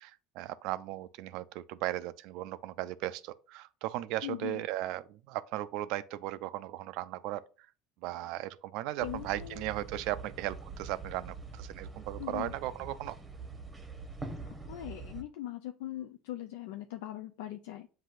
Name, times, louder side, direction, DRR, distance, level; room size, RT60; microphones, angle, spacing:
voice 1, 0.0-7.4 8.0-13.2, right 15 dB, 70° right, 0.3 m, -37 dB
voice 2, 4.2-4.6 9.0-9.7 12.2-12.5 14.7-17.9, left 13 dB, 85° left, 0.3 m, -40 dB
sound 1, 9.0-15.2, right 3 dB, 15° right, 0.8 m, -44 dB
7.6 x 2.6 x 2.4 m
supercardioid pair, 105°, 0 cm